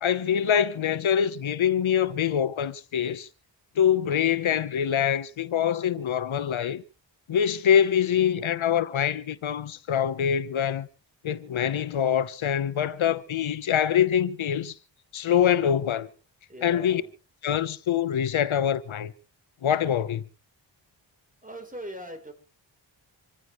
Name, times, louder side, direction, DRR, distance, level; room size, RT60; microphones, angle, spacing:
voice 1, 0.0-3.3 3.8-6.8 7.3-10.9 11.2-14.7 15.1-16.1 16.6-17.0 17.4-19.1 19.6-20.2, left 9 dB, 90° left, 1.0 m, -24 dB
voice 2, 16.5-17.1 21.4-22.3, equal, 15° right, 3.8 m, -40 dB
26.5 x 15.0 x 3.1 m
wide cardioid pair, 135°, 47 cm